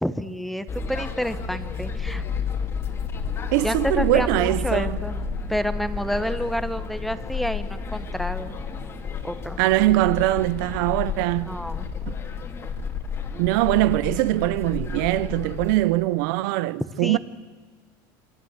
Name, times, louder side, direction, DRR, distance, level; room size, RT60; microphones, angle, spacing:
voice 1, 0.0-2.2 3.6-5.1 5.5-8.5 9.2-9.6 11.4-11.9 17.0-17.2, equal, ahead, 1.0 m, -29 dB
sound 1, 0.7-15.8, left 5 dB, 20° left, 2.4 m, -31 dB
voice 2, 3.5-5.0 9.6-11.6 12.1-12.2 13.4-17.2, right 18 dB, 60° right, 0.7 m, -22 dB
27.0 x 24.0 x 8.1 m
supercardioid pair, 155°, 12 cm